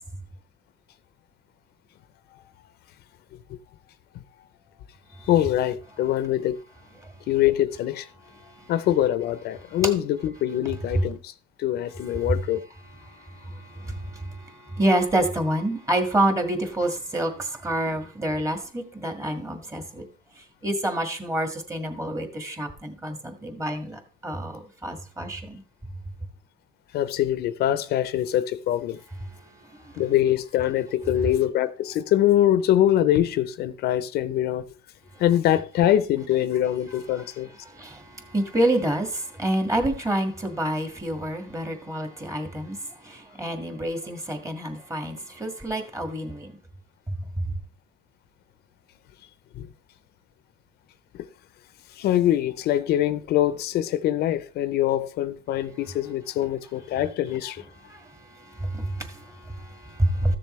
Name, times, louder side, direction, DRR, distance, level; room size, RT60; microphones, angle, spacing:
voice 1, 5.2-6.6 7.3-8.1 8.7-11.3 11.6-12.6 26.9-29.0 30.0-34.7 35.2-37.5 49.6-49.7 51.1-51.2 52.0-57.6, left 12 dB, 70° left, 0.6 m, -23 dB
voice 2, 8.4-8.7 9.6-9.8 10.9-11.1 12.2-12.4 13.0-20.0 20.6-25.6 29.4-30.0 35.2-35.3 37.2-37.3 37.6-46.6 47.4-47.5 57.9-60.4, right 1 dB, 20° right, 1.8 m, -28 dB
14.0 x 6.9 x 3.2 m
cardioid pair, 110°, 17 cm